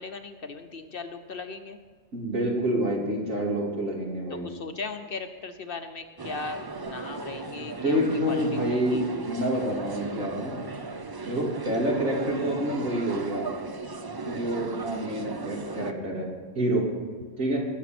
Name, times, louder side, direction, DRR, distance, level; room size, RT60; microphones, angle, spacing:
voice 1, 0.0-1.8 4.3-9.0, left 4 dB, 50° left, 8 dB, 0.9 m, -38 dB
voice 2, 2.1-4.5 7.8-10.6 11.2-13.5 14.2-16.3 16.5-16.9 17.4-17.6, right 1 dB, 80° right, -2 dB, 3.2 m, -27 dB
sound 1, 6.2-15.9, right 3 dB, 35° right, 0.3 m, -37 dB
20.5 x 7.4 x 6.0 m, 1.5 s
omnidirectional pair, 1.4 m